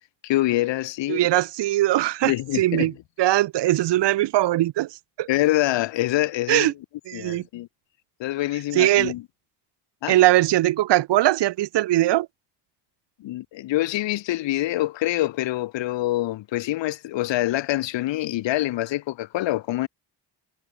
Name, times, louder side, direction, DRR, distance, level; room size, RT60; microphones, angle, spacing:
voice 1, 0.2-1.3 2.2-2.9 5.3-6.7 7.1-7.7 8.2-9.2 10.0-10.2 13.2-19.9, left 15 dB, 80° left, 2.4 m, -25 dB
voice 2, 1.1-5.3 6.5-6.7 7.1-7.4 8.7-9.1 10.1-12.3, right 15 dB, 70° right, 1.1 m, -21 dB
cardioid pair, 85°, 43 cm